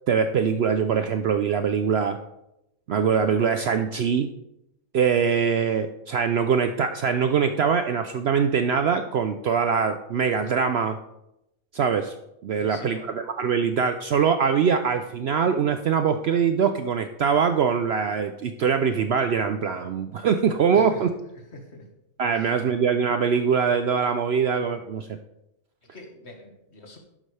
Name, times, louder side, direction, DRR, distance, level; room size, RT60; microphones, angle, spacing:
voice 1, 0.1-2.2 2.9-4.3 4.9-11.0 11.7-12.1 12.4-21.1 22.2-25.1, right 6 dB, 60° right, 8 dB, 0.7 m, -23 dB
voice 2, 12.6-13.1 20.7-21.0 21.3-21.9 22.3-22.5 25.8-27.0, left 2 dB, 50° left, 3 dB, 1.9 m, -44 dB
11.5 x 8.9 x 3.3 m, 0.86 s
omnidirectional pair, 1.5 m